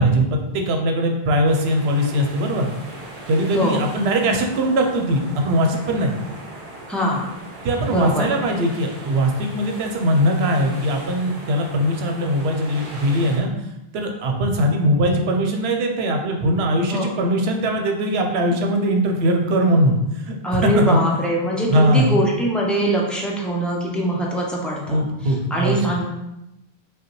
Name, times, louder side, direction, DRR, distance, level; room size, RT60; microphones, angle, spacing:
voice 1, 0.0-2.7 3.3-6.1 7.6-13.5 13.9-21.0 21.7-22.2 24.9-25.8, right 1 dB, 80° right, 3 dB, 0.9 m, -20 dB
sound 1, 1.5-13.4, right 2 dB, 40° right, 0.8 m, -38 dB
voice 2, 6.9-7.2 7.9-8.3 16.9-17.1 20.4-25.1 25.5-26.0, right 1 dB, ahead, -3 dB, 0.4 m, -22 dB
5.1 x 2.2 x 3.0 m, 0.91 s
omnidirectional pair, 1.1 m